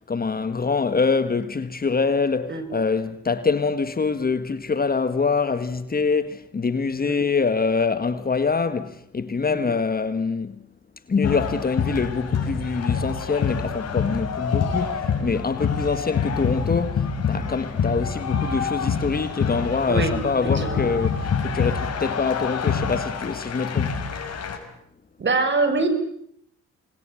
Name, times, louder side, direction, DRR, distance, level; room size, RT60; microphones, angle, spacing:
voice 1, 0.0-10.6 11.1-24.0, left 4 dB, 30° left, 1.9 m, -25 dB
sound 1, 11.2-24.6, left 6 dB, 55° left, 6.3 m, -26 dB
voice 2, 25.2-25.9, right 3 dB, 40° right, 6.4 m, -23 dB
27.5 x 21.5 x 9.2 m
cardioid pair, 90°, 30 cm